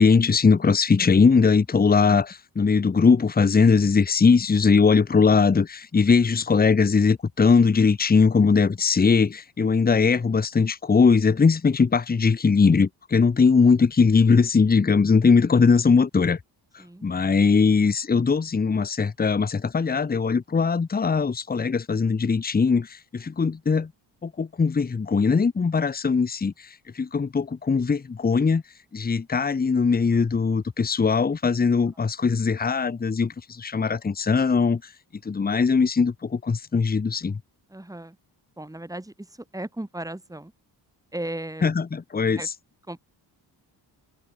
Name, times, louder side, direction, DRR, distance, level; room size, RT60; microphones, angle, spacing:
voice 1, 0.0-16.4 17.0-23.9 24.2-26.5 26.9-28.6 28.9-34.8 35.2-37.4 41.6-42.4, left 5 dB, 20° left, 1.0 m, -20 dB
voice 2, 37.7-38.2 38.6-40.5 41.1-41.8 42.4-42.5 42.9-43.0, right 1 dB, 10° right, 6.5 m, -36 dB
cardioid pair, 115°, 42 cm